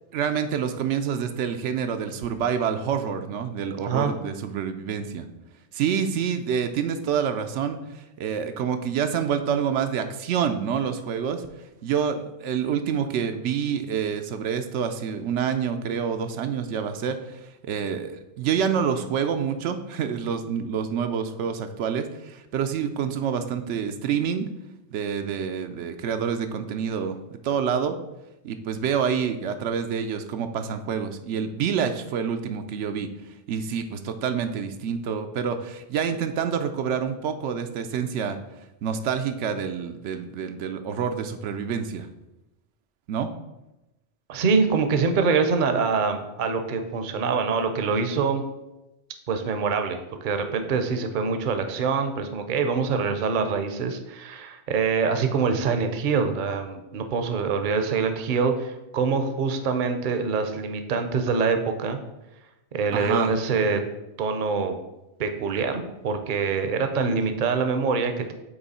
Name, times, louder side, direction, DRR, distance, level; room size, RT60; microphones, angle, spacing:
voice 1, 0.1-5.2 5.7-11.4 11.8-24.5 24.9-28.0 28.4-33.1 33.5-38.4 38.8-42.1 43.1-43.3 62.9-63.3, right 7 dB, 80° right, 7 dB, 0.9 m, -27 dB
voice 2, 44.3-48.4 49.3-62.0 62.7-63.8 64.2-64.8 65.2-68.3, right 5 dB, 50° right, 7 dB, 0.7 m, -25 dB
8.1 x 3.1 x 4.1 m, 0.96 s
omnidirectional pair, 1.2 m